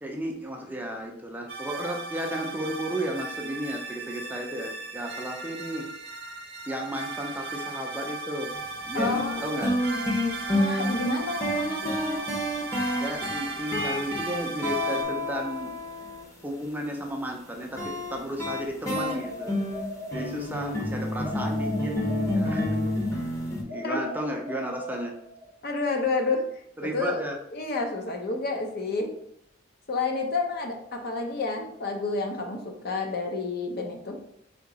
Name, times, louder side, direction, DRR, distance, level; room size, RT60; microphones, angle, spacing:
voice 1, 0.0-5.9 6.7-8.5 8.8-9.8 13.0-15.7 16.4-19.6 20.1-22.0 22.3-22.8 23.6-25.1 26.8-27.4, right 1 dB, 10° right, 1 dB, 0.5 m, -33 dB
sound 1, 1.5-15.0, right 3 dB, 60° right, 0.8 m, -36 dB
sound 2, 8.5-8.6 9.0-16.2 17.8-23.6, left 1 dB, 15° left, 0.8 m, -29 dB
voice 2, 8.9-9.4 10.5-12.2 23.8-24.1 25.6-26.4 26.9-27.2 27.5-29.1 29.9-34.2, left 3 dB, 55° left, 3 dB, 0.7 m, -29 dB
sound 3, 18.9-20.7 21.2-23.1 23.7-25.6, left 1 dB, 85° left, 1.3 m, -39 dB
3.6 x 2.8 x 4.0 m, 0.74 s
head